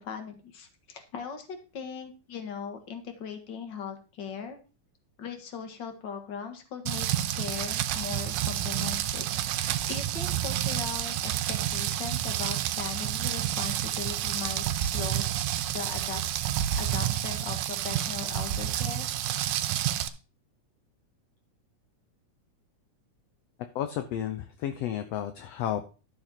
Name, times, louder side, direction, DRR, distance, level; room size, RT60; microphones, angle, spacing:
voice 1, 0.0-4.6 5.2-9.3 9.5-15.2 15.7-16.2 16.8-19.1, left 6 dB, 45° left, 6 dB, 1.8 m, -39 dB
Rain, 6.9-20.1, right 12 dB, 85° right, 2.3 m, -29 dB
voice 2, 23.7-25.8, left 10 dB, 75° left, 8 dB, 1.5 m, -32 dB
12.5 x 6.7 x 4.4 m, 0.35 s
omnidirectional pair, 3.7 m